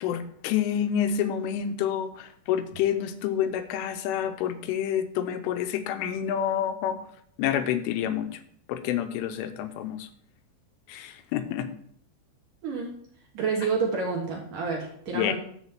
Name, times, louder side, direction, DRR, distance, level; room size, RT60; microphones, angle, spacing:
voice 1, 0.0-7.0 7.4-8.4 8.7-10.1 10.9-11.7 13.6-13.7 15.1-15.3, left 9 dB, 90° left, 10 dB, 3.3 m, -28 dB
voice 2, 13.4-15.3, right 5 dB, 65° right, 0 dB, 2.2 m, -28 dB
10.5 x 4.1 x 7.3 m, 0.63 s
omnidirectional pair, 5.4 m